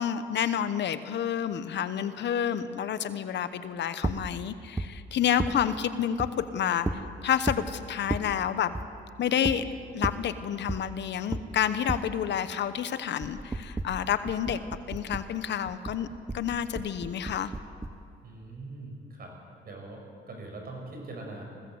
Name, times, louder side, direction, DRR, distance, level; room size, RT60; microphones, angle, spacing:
voice 1, 0.0-8.7 9.2-9.6 9.9-14.6 14.9-16.1 16.3-17.5, left 9 dB, 65° left, 12 dB, 1.0 m, -29 dB
sound 1, 4.0-4.2 4.8-4.9 5.4-5.6 6.2-6.3 6.8-7.0 7.5-7.7 8.1-8.3 8.7-8.9 9.4-9.6 10.0-10.2 10.7-10.9 11.3-11.4 11.9-12.0 13.2-15.3 15.7-18.0, right 2 dB, 15° right, 0.9 m, -33 dB
voice 2, 18.2-19.3 19.6-21.4, right 2 dB, 50° right, 1 dB, 6.1 m, -42 dB
20.5 x 16.0 x 7.9 m, 2.4 s
cardioid pair, 90°, 20 cm